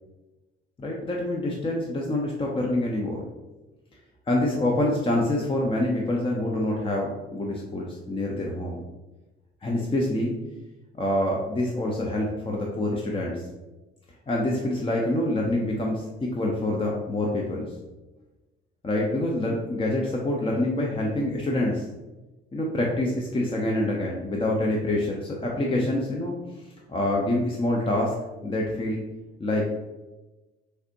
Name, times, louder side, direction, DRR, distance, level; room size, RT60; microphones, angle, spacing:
voice 1, 0.8-3.2 4.3-8.8 9.6-10.3 11.0-13.5 14.3-17.7 18.8-21.9 22.5-29.0 29.4-29.6, left 1 dB, 15° left, -2 dB, 0.7 m, -26 dB
6.4 x 2.5 x 2.8 m, 1.1 s
figure-of-eight pair, 50°, 32 cm